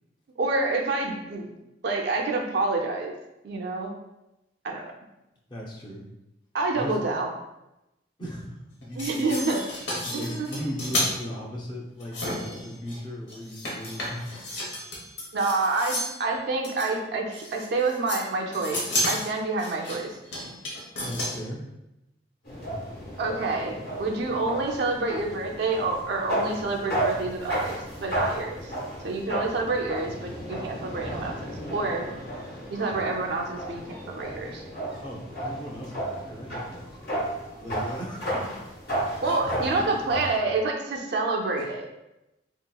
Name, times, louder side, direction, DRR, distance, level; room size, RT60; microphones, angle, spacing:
voice 1, 0.4-1.5 1.8-3.1 3.4-3.9 4.6-4.9 6.5-7.3 9.0-9.6 10.1-10.5 15.3-20.1 23.2-28.7 29.0-32.1 32.7-34.6 39.2-41.8, right 3 dB, 65° right, 1 dB, 0.4 m, -28 dB
voice 2, 5.5-6.0 6.7-7.0 8.2-9.3 10.0-14.3 21.0-21.7 35.0-37.1 37.6-38.8 39.2-40.0 41.6-41.7, equal, 25° left, -3 dB, 0.6 m, -37 dB
sound 1, 8.8-11.1 12.0-13.0 13.3-16.2 16.6-16.9 17.3-18.2 18.5-21.4, left 1 dB, 80° left, 0.9 m, -32 dB
sound 2, 22.4-40.4, right 1 dB, 60° left, 1.2 m, -33 dB
3.4 x 2.8 x 2.2 m, 0.92 s
head